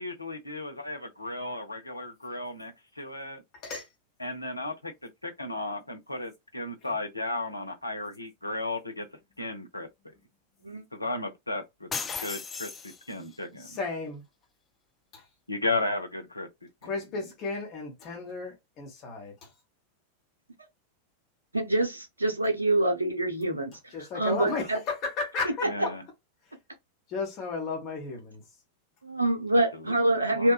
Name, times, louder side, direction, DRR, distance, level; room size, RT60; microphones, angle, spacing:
voice 1, 0.0-3.4 4.2-9.1 9.4-9.9 10.9-11.9 12.2-12.7 13.1-13.8 15.5-16.5 25.6-26.0 29.7-29.9 30.3-30.5, left 2 dB, 85° left, 0.5 m, -34 dB
voice 2, 3.5-3.9 6.8-6.9 13.6-14.2 15.1-15.2 16.8-19.5 23.9-25.9 27.1-28.4, left 4 dB, 35° left, 0.9 m, -34 dB
sound 1, 11.9-13.4, left 5 dB, 20° left, 0.3 m, -36 dB
voice 3, 21.5-23.8 24.1-24.8 25.6-25.9 29.0-30.5, right 1 dB, 80° right, 0.6 m, -26 dB
2.8 x 2.2 x 2.3 m
figure-of-eight pair, 90°, 0 cm